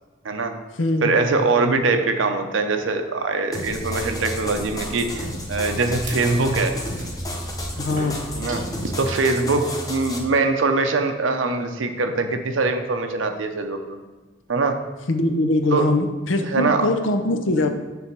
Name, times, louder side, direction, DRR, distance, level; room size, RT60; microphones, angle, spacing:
voice 1, 0.2-0.6 1.0-6.8 8.3-14.0 14.5-14.8 15.7-15.9 16.4-16.9, right 3 dB, 85° right, 6 dB, 0.7 m, -22 dB
voice 2, 0.8-1.1 7.8-8.2 15.1-17.7, left 2 dB, 80° left, 7 dB, 0.7 m, -22 dB
sound 1, 3.5-10.2, left 1 dB, 20° left, 0.8 m, -32 dB
sound 2, 3.6-9.2, right 1 dB, 45° right, 1.6 m, -37 dB
7.0 x 3.4 x 5.9 m, 1.3 s
head